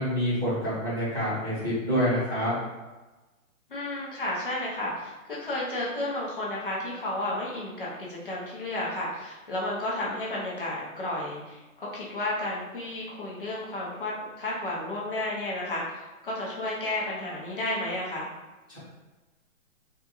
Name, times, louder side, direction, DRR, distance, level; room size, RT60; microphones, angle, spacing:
voice 1, 0.0-2.6 18.7-18.8, equal, 15° right, -14 dB, 0.6 m, -27 dB
voice 2, 3.7-18.3, left 1 dB, 40° left, -5 dB, 0.7 m, -32 dB
3.5 x 2.3 x 2.9 m, 1.1 s
hypercardioid pair, 175°, 42 cm